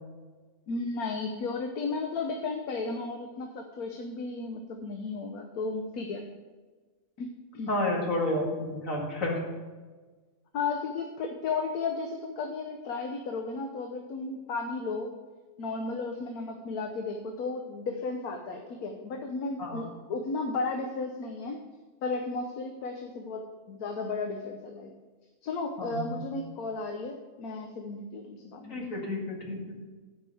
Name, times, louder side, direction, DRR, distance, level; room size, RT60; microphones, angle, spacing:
voice 1, 0.7-6.2 7.2-7.7 10.5-15.1 15.6-21.6 22.0-24.9 25.4-28.8, left 3 dB, 75° left, 4 dB, 1.3 m, -34 dB
voice 2, 7.7-9.4 19.6-19.9 25.8-26.2 28.7-29.9, left 1 dB, 60° left, -1 dB, 2.5 m, -31 dB
9.9 x 5.3 x 7.6 m, 1.3 s
omnidirectional pair, 1.6 m